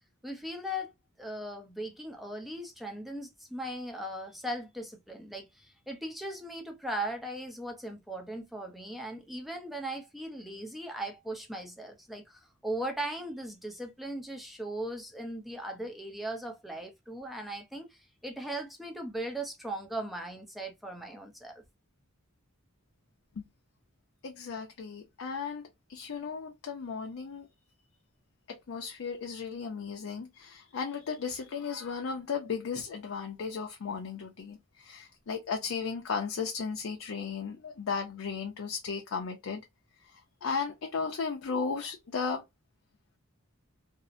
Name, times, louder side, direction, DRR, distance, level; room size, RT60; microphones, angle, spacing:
voice 1, 0.2-0.9 1.2-21.6, right 1 dB, ahead, 0.5 m, -38 dB
voice 2, 24.2-27.5 28.5-39.6 40.0-42.4, left 5 dB, 65° left, 0.4 m, -35 dB
2.6 x 2.0 x 2.4 m
head